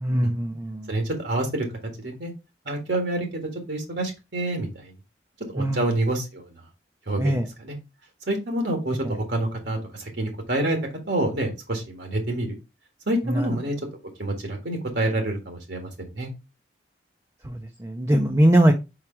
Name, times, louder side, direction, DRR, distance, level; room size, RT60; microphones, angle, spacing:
voice 1, 0.0-0.9 5.6-5.8 7.2-7.5 13.3-13.5 17.4-18.7, right 1 dB, 20° right, 3 dB, 0.6 m, -21 dB
voice 2, 0.9-1.7 2.0-2.3 2.7-4.9 5.5-6.5 7.1-7.8 8.3-9.0 9.3-10.8 11.1-12.6 13.1-13.7 14.2-16.3, right 1 dB, 70° right, 3 dB, 1.7 m, -27 dB
4.9 x 4.8 x 4.4 m, 0.26 s
head